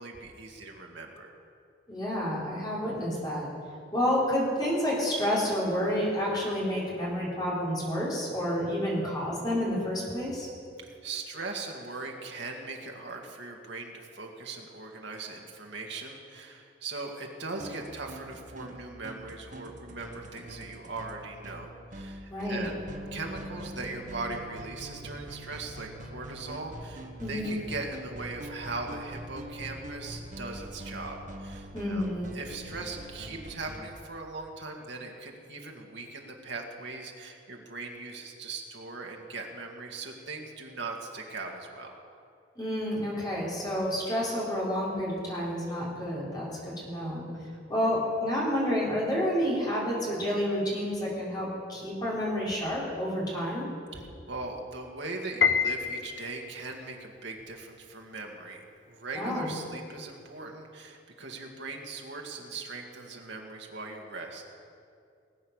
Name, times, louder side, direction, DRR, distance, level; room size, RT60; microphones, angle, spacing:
voice 1, 0.0-1.3 10.8-22.8 23.1-32.1 32.3-41.9 47.5-47.6 53.9-64.4, right 3 dB, 70° right, 1 dB, 1.9 m, -40 dB
voice 2, 1.9-3.5 3.9-10.5 22.3-22.7 27.2-27.6 31.7-32.3 42.6-47.2 47.7-53.7 59.1-59.5, equal, 20° left, -6 dB, 3.8 m, -29 dB
sound 1, 17.5-33.8, equal, 40° right, 1.2 m, -43 dB
Piano, 55.4-56.7, left 6 dB, 65° left, 0.6 m, -27 dB
19.5 x 8.6 x 6.5 m, 2.5 s
head